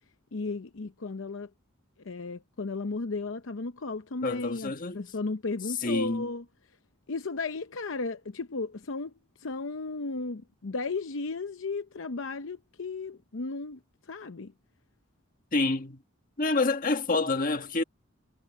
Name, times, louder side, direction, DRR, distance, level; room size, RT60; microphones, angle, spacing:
voice 1, 0.3-1.5 2.0-6.4 7.1-9.1 9.4-14.5, left 3 dB, 70° left, 0.7 m, -35 dB
voice 2, 4.2-5.1 5.8-6.3 15.5-16.0 16.4-17.8, left 3 dB, 45° left, 1.6 m, -27 dB
head